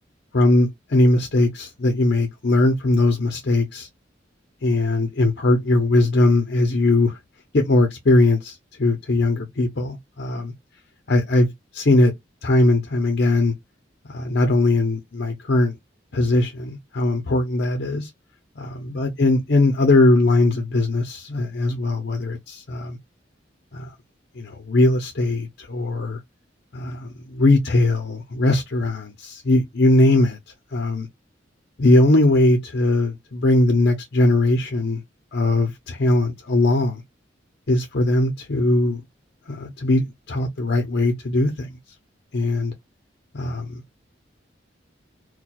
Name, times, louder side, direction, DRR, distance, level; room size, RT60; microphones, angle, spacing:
voice 1, 0.3-3.9 4.6-7.2 7.5-10.5 11.1-12.1 12.4-13.5 14.0-15.8 16.1-18.1 18.6-23.0 23.7-23.9 24.4-26.2 26.7-30.4 30.7-31.1 31.8-35.0 35.3-37.0 37.7-39.0 39.5-41.7 42.3-42.7 43.3-43.8, left 2 dB, 60° left, 0.7 m, -20 dB
4.3 x 2.2 x 2.3 m
head